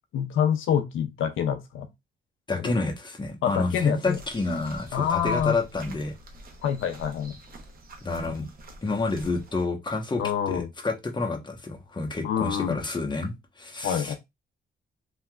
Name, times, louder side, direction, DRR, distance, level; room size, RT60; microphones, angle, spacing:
voice 1, 0.1-1.9 2.6-2.7 3.4-4.2 4.9-5.6 6.6-7.4 10.2-10.7 12.2-12.8 13.8-14.1, left 8 dB, 85° left, 0.5 m, -26 dB
voice 2, 2.5-6.1 8.0-8.5 8.8-14.1, left 3 dB, 25° left, 1.0 m, -29 dB
sound 1, 4.1-9.7, right 1 dB, 50° right, 1.0 m, -46 dB
3.2 x 2.9 x 2.3 m
cardioid pair, 75°, 20 cm